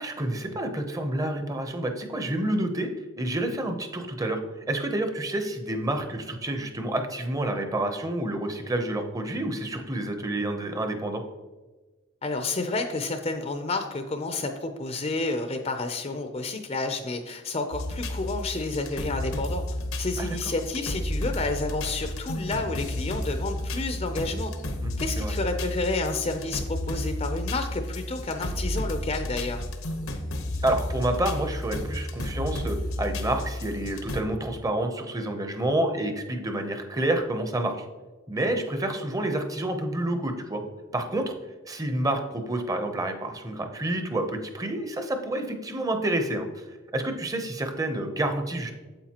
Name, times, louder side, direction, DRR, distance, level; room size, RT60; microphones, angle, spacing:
voice 1, 0.0-2.9 3.2-4.4 4.7-11.2 20.2-20.3 24.8-25.3 30.6-37.9 38.3-40.6 40.9-41.3 41.7-48.7, right 1 dB, 15° right, 6 dB, 0.7 m, -29 dB
voice 2, 12.2-19.6 20.0-24.5 25.0-29.6, left 3 dB, 30° left, 6 dB, 0.5 m, -30 dB
sound 1, 17.7-34.2, left 1 dB, 85° left, 1.0 m, -32 dB
8.9 x 7.8 x 2.9 m, 1.3 s
head